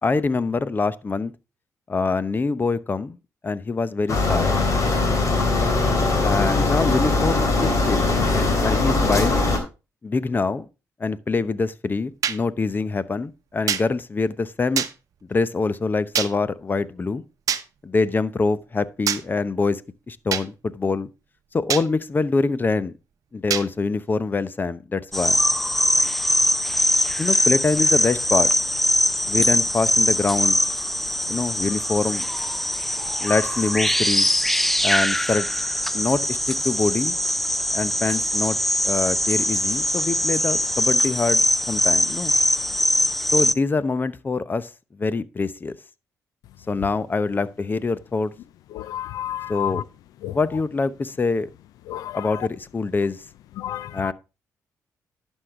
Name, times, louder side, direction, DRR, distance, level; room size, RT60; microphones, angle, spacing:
voice 1, 0.0-1.3 1.9-3.2 3.4-4.6 6.2-8.1 8.6-9.4 10.0-10.6 11.0-14.8 15.3-17.2 17.8-19.8 20.1-21.1 21.5-22.9 23.3-25.4 25.9-26.1 27.2-28.5 29.3-30.6 31.3-32.2 33.2-34.3 34.8-35.5 35.9-37.2 37.7-38.6 38.8-42.3 43.3-44.7 45.0-45.8 46.7-48.3 49.5-49.8 50.3-51.5 52.1-53.2 53.9-54.1, left 3 dB, 30° left, 0.8 m, -24 dB
sound 1, 4.1-9.6, left 3 dB, 55° left, 3.5 m, -21 dB
sound 2, 12.2-12.4 13.7-13.8 14.8-14.9 16.1-16.3 17.5-17.6 19.1-19.2 20.3-20.5 21.7-21.9 23.5-23.7, right 9 dB, 65° right, 0.8 m, -23 dB
sound 3, 25.1-43.5, equal, 5° left, 0.5 m, -22 dB
voice 2, 48.7-49.8 50.2-50.3 51.9-52.4 53.6-54.1, left 11 dB, 90° left, 0.4 m, -31 dB
11.5 x 6.4 x 3.7 m
cardioid pair, 75°, 6 cm